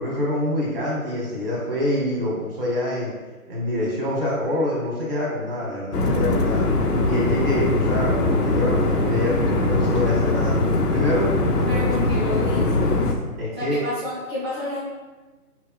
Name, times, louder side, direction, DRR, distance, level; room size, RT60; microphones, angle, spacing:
voice 1, 0.0-3.1 3.5-6.6 7.0-10.5 10.9-11.3 13.4-13.8, left 1 dB, 40° right, -4 dB, 1.3 m, -25 dB
sound 1, 5.9-13.1, left 2 dB, 85° left, 0.7 m, -21 dB
voice 2, 11.7-13.2 13.5-14.8, left 1 dB, 20° left, -12 dB, 0.6 m, -30 dB
5.2 x 3.0 x 2.2 m, 1.3 s
figure-of-eight pair, 155°, 46 cm